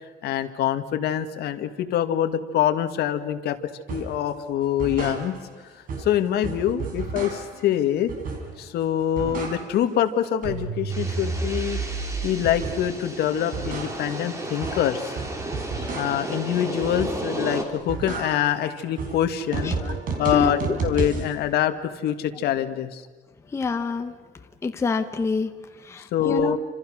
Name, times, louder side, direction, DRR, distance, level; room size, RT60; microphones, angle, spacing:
voice 1, 0.2-5.4 5.7-8.1 8.6-11.8 12.2-15.2 15.7-19.8 20.2-23.0 26.1-26.6, left 10 dB, 60° left, 8 dB, 1.8 m, -25 dB
sound 1, 3.9-4.2 4.6-5.6 5.9-7.7 8.1-8.7 9.0-10.0 10.2-13.0 13.3-16.4 16.8-17.4 17.7-21.3, right 4 dB, 50° right, 4.7 m, -32 dB
sound 2, 10.9-17.6, right 1 dB, 15° right, 3.0 m, -34 dB
voice 2, 23.5-24.1 24.6-25.5 25.8-26.6, left 4 dB, 15° left, 7 dB, 0.8 m, -26 dB
28.5 x 27.0 x 6.4 m, 1.4 s
cardioid pair, 175°, 18 cm